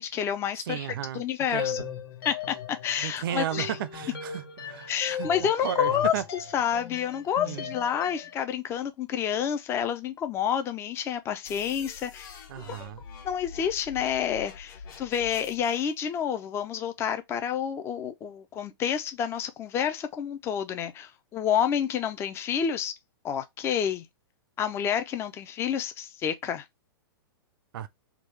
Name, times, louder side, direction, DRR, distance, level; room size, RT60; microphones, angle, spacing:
voice 1, 0.0-0.9 1.1-1.8 2.2-3.8 4.9-6.1 6.5-12.9 13.2-22.9 23.2-24.1 24.6-26.6, left 8 dB, 20° left, 0.5 m, -29 dB
voice 2, 0.7-1.2 1.5-1.9 3.0-6.2 7.4-7.7 12.5-13.0 27.7-27.9, right 11 dB, 60° right, 0.6 m, -34 dB
sound 1, 1.6-8.4, left 8 dB, 70° left, 1.2 m, -38 dB
sound 2, 11.4-15.8, left 6 dB, 50° left, 1.4 m, -46 dB
3.6 x 2.3 x 3.2 m
hypercardioid pair, 140°, 13 cm